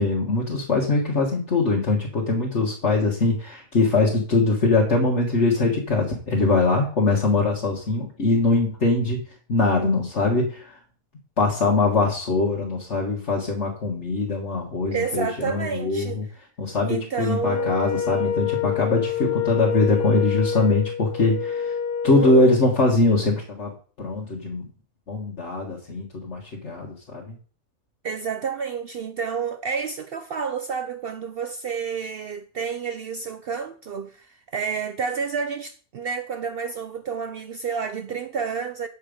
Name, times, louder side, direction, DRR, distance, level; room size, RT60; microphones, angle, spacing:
voice 1, 0.0-9.2 9.5-10.8 11.4-16.2 16.6-21.7 22.0-23.7 24.0-24.6 25.1-27.3, left 3 dB, 45° left, 1.7 m, -22 dB
voice 2, 14.9-16.3 16.9-17.8 22.1-22.6 28.0-38.9, right 6 dB, 85° right, 0.5 m, -30 dB
Wind instrument woodwind instrument, 17.4-22.6, left 8 dB, 75° left, 1.6 m, -27 dB
8.6 x 7.1 x 5.0 m
omnidirectional pair, 1.7 m